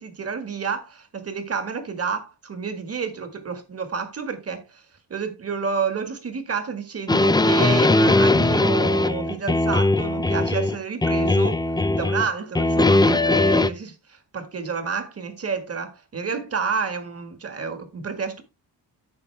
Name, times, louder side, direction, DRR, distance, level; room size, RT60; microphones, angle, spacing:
voice 1, 0.0-4.8 5.1-11.6 11.9-18.4, right 5 dB, 35° right, 1.6 m, -30 dB
sound 1, 7.1-10.8 11.0-12.3 12.6-13.7, left 2 dB, 10° left, 0.4 m, -19 dB
9.5 x 7.1 x 3.3 m
wide cardioid pair, 155°, 42 cm